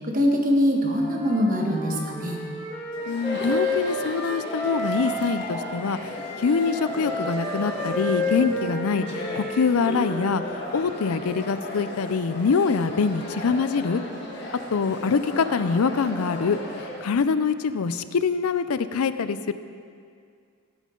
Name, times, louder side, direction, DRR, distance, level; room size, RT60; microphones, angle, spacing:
voice 1, 0.0-2.4, equal, 40° right, 1 dB, 1.4 m, -23 dB
Wind instrument woodwind instrument, 0.9-5.5 6.1-10.9, left 1 dB, 10° left, 2.7 m, -31 dB
Chatter, 2.9-17.1, left 1 dB, 50° left, 1.7 m, -36 dB
voice 2, 3.1-6.0 6.4-9.1 9.4-10.4 10.7-14.0 14.7-16.6 17.0-19.5, left 5 dB, 85° left, 12 dB, 0.5 m, -24 dB
17.0 x 8.5 x 3.9 m, 2.3 s
head